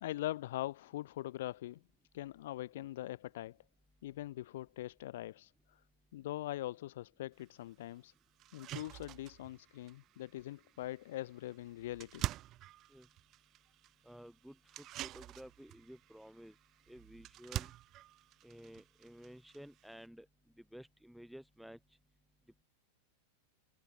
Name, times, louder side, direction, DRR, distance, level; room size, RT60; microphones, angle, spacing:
voice 1, 0.0-1.8 2.1-3.6 4.0-5.8 6.1-8.1 8.5-12.2, left 14 dB, 55° left, 0.5 m, -42 dB
sound 1, 7.4-7.5 7.9-8.0 8.4-20.1, right 15 dB, 35° right, 3.8 m, -47 dB
voice 2, 14.0-16.5 16.9-17.7 18.4-20.3 20.6-21.8, equal, ahead, 4.1 m, -53 dB
figure-of-eight pair, 90°, 0 cm